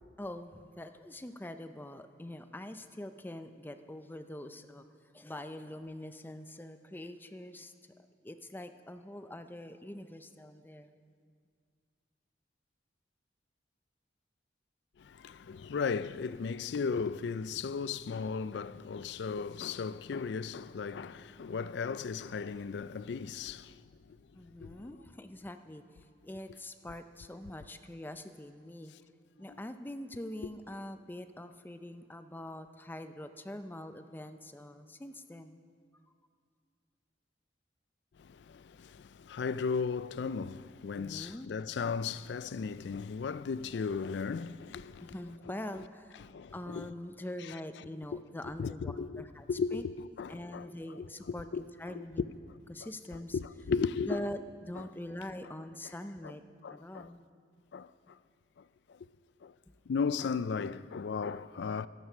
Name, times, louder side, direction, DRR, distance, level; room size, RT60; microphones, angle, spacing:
voice 1, 0.2-4.9 5.1-7.7 8.2-10.9 24.3-25.8 26.2-28.9 29.4-35.6 40.9-41.5 45.0-46.2 46.5-49.5 49.7-49.8 50.3-52.3 52.7-53.4 54.1-56.4 56.7-57.2 59.7-59.8, left 1 dB, 10° left, 0.5 m, -44 dB
voice 2, 15.0-23.8 24.1-24.2 24.6-24.9 38.2-45.1 46.2-46.9 48.1-48.2 48.6-50.7 51.5-51.6 51.9-52.0 53.3-54.2 56.6-57.1 57.7-57.9 58.9-59.0 59.4-59.5 59.9-61.9, left 5 dB, 65° left, 0.4 m, -36 dB
12.5 x 11.0 x 6.1 m
head